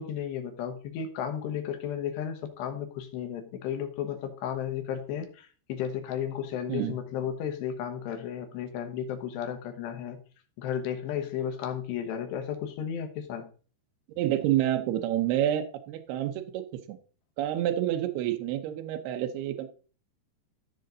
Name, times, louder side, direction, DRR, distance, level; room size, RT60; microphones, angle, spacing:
voice 1, 0.0-10.2 10.6-13.5, left 9 dB, 80° left, 6 dB, 3.3 m, -34 dB
voice 2, 14.1-16.6 16.9-17.0 17.4-19.7, right 12 dB, 75° right, 6 dB, 2.7 m, -28 dB
14.0 x 5.1 x 3.9 m, 0.40 s
omnidirectional pair, 5.0 m